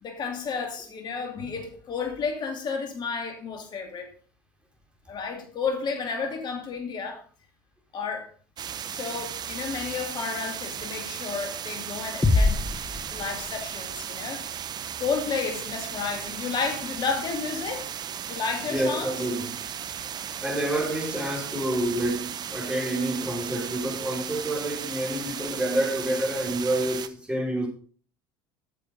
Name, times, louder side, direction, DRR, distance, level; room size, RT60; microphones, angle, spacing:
voice 1, 0.0-4.1 5.1-7.2 7.9-8.3 8.9-12.6 13.1-14.4 15.0-17.9 18.3-19.1, left 5 dB, 45° left, 2.6 m, -31 dB
sound 1, 8.6-27.1, right 8 dB, 40° right, 0.8 m, -36 dB
sound 2, 12.2-13.9, left 3 dB, 15° left, 1.1 m, -24 dB
voice 2, 18.7-19.5 20.4-27.7, right 1 dB, 10° right, 4.2 m, -28 dB
9.1 x 6.9 x 5.2 m
hypercardioid pair, 75°, 11 cm